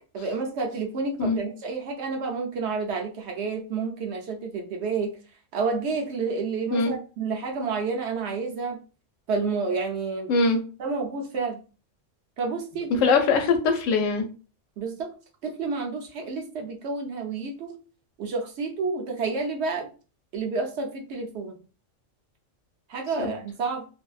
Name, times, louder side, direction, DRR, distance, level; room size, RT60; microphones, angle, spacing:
voice 1, 0.1-5.1 5.5-8.8 9.3-10.3 10.8-11.6 12.4-13.0 14.8-15.1 15.4-17.8 18.2-19.9 20.3-21.6 22.9-23.9, right 4 dB, 65° right, 2 dB, 0.8 m, -30 dB
voice 2, 13.0-14.3 23.2-23.3, left 4 dB, 90° left, 5 dB, 1.0 m, -22 dB
2.5 x 2.1 x 2.3 m, 0.34 s
omnidirectional pair, 1.3 m